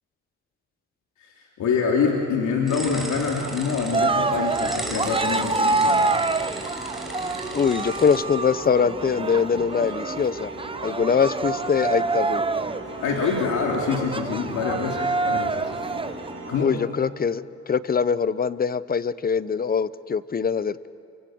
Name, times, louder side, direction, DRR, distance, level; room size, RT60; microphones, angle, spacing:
voice 1, 1.2-6.1 13.0-15.6 16.5-16.8, left 5 dB, 75° left, -1 dB, 3.0 m, -25 dB
sound 1, 2.7-8.2, right 1 dB, ahead, 5.8 m, -37 dB
sound 2, 3.4-16.6, right 2 dB, 40° right, 7.9 m, -38 dB
Cheering, 3.9-16.3, right 3 dB, 20° right, 0.9 m, -27 dB
voice 2, 7.5-10.5 10.8-12.4 16.6-20.9, left 6 dB, 30° left, 17 dB, 0.8 m, -23 dB
28.5 x 25.0 x 7.8 m, 2.3 s
cardioid pair, 90°, 30 cm